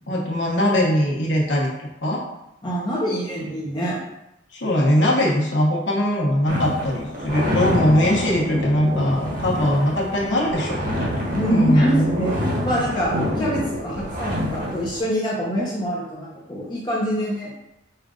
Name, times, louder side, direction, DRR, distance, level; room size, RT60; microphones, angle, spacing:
voice 1, 0.1-1.7 2.0-2.2 4.5-11.1 11.5-12.1, equal, 65° left, -2 dB, 1.1 m, -21 dB
voice 2, 2.6-4.0 11.3-12.3 12.6-17.5, equal, 25° left, -7 dB, 0.8 m, -25 dB
sound 1, 6.5-15.0, left 1 dB, 45° right, 1.2 m, -27 dB
5.5 x 2.5 x 3.7 m, 0.86 s
head